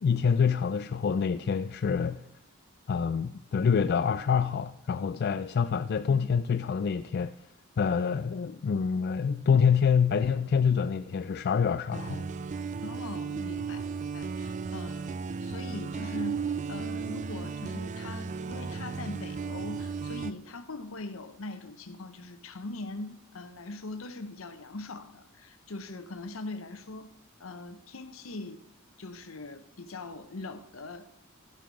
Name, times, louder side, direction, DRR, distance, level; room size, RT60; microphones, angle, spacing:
voice 1, 0.0-2.2 2.9-7.3 7.8-12.3, left 6 dB, 50° left, 0.3 m, -26 dB
sound 1, 11.9-20.3, right 5 dB, 35° right, 0.4 m, -35 dB
voice 2, 12.8-15.1 15.4-27.1 27.4-28.6 29.0-31.1, left 2 dB, 75° left, 0.9 m, -41 dB
13.5 x 7.5 x 4.8 m
head